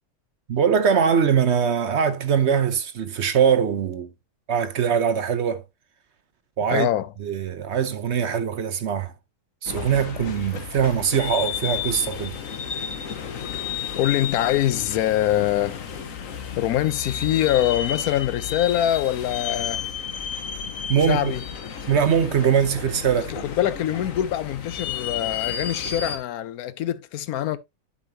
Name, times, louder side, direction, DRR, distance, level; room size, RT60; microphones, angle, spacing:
voice 1, 0.5-4.1 4.5-5.6 6.6-6.9 7.2-9.1 9.6-12.3 20.9-21.3 21.9-23.4, right 7 dB, 55° right, 0.9 m, -22 dB
voice 2, 6.7-7.1 13.5-13.7 14.0-15.9 16.6-19.8 21.1-21.4 23.2-27.6, left 12 dB, 75° left, 1.1 m, -24 dB
sound 1, 9.7-26.2, left 8 dB, 60° left, 1.4 m, -32 dB
11.0 x 5.5 x 2.7 m
omnidirectional pair, 1.6 m